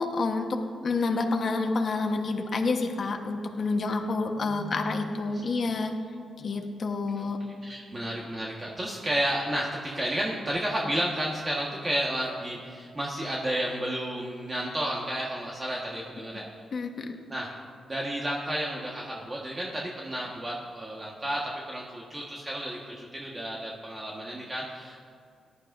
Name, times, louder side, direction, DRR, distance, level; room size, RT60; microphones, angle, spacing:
voice 1, 0.0-5.9 6.4-7.4 16.7-17.1, left 3 dB, 50° left, 3 dB, 1.2 m, -28 dB
voice 2, 4.4-5.5 7.2-7.3 7.6-16.4 17.3-17.5 17.9-25.1, right 1 dB, 25° right, -3 dB, 1.5 m, -32 dB
18.0 x 11.5 x 2.6 m, 2.3 s
cardioid pair, 90°, 0 cm